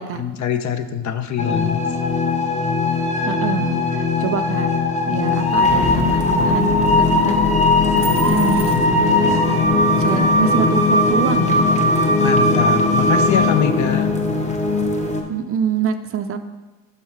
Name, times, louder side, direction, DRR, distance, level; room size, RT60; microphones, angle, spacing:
voice 1, 0.0-1.8 12.2-14.1, left 8 dB, 45° left, 10 dB, 0.6 m, -23 dB
sound 1, 1.4-15.2, left 2 dB, 20° left, 1.0 m, -18 dB
voice 2, 3.3-4.7 5.1-7.4 7.9-9.6 10.0-11.7 15.3-16.4, right 7 dB, 35° right, 9 dB, 0.4 m, -25 dB
Wind instrument woodwind instrument, 7.3-12.3, left 4 dB, 70° left, 1.5 m, -38 dB
sound 2, 7.9-9.1 10.0-10.1, right 2 dB, 15° right, 1.2 m, -34 dB
5.5 x 5.5 x 4.6 m, 1.2 s
supercardioid pair, 80°, 39 cm